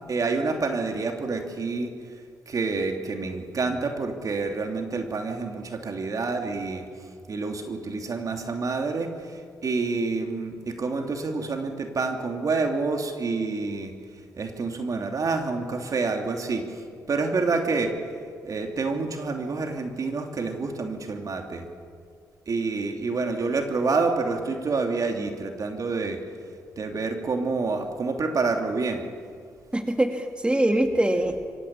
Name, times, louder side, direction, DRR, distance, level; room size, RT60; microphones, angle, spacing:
voice 1, 0.1-1.9 2.5-6.8 7.3-9.1 9.6-13.9 14.4-16.6 17.1-17.9 18.4-21.6 22.5-26.2 26.8-29.0, right 4 dB, 50° right, 4 dB, 2.9 m, -28 dB
voice 2, 29.7-31.5, right 1 dB, 15° right, 5 dB, 2.4 m, -23 dB
24.5 x 16.0 x 8.9 m, 2.2 s
supercardioid pair, 50°, 7 cm